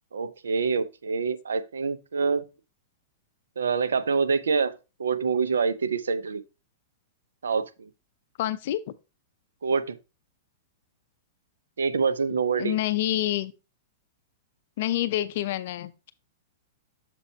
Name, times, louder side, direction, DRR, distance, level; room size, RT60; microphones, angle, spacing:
voice 1, 0.1-2.4 3.6-4.7 5.0-6.4 7.4-7.9 9.6-10.0 11.8-12.8, right 5 dB, 85° right, 0.6 m, -26 dB
voice 2, 8.4-8.8 12.6-13.5 14.8-16.1, left 13 dB, 60° left, 0.5 m, -27 dB
6.8 x 5.4 x 2.8 m
hypercardioid pair, 115°, 0 cm